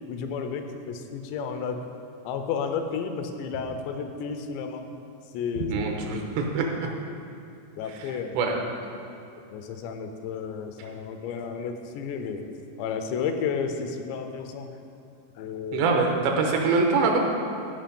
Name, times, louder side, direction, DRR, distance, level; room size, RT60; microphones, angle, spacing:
voice 1, 0.1-1.8 2.2-4.8 5.3-5.7 6.1-6.2 6.8-6.9 7.8-8.4 9.5-12.5 12.8-14.7 15.4-15.9, left 6 dB, 85° left, 6 dB, 2.9 m, -32 dB
voice 2, 5.7-6.6 8.4-8.6 15.7-17.2, right 4 dB, 85° right, 1 dB, 3.1 m, -23 dB
13.5 x 5.3 x 5.2 m, 2.5 s
omnidirectional pair, 5.0 m